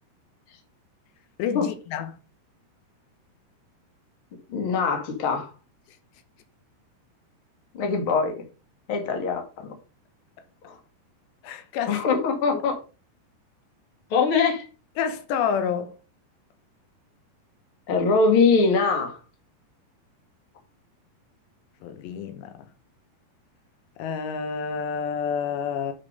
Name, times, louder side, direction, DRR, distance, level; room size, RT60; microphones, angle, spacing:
voice 1, 1.4-2.1 11.4-12.0 12.5-12.6 15.0-15.9 21.8-22.6 24.0-25.9, left 7 dB, 85° left, 3.2 m, -28 dB
voice 2, 4.5-5.5 7.7-8.4 8.9-9.8 10.6-10.8 11.9-12.8 14.1-14.7 17.9-19.2, left 4 dB, 40° left, 2.3 m, -22 dB
7.5 x 7.0 x 5.2 m
omnidirectional pair, 4.9 m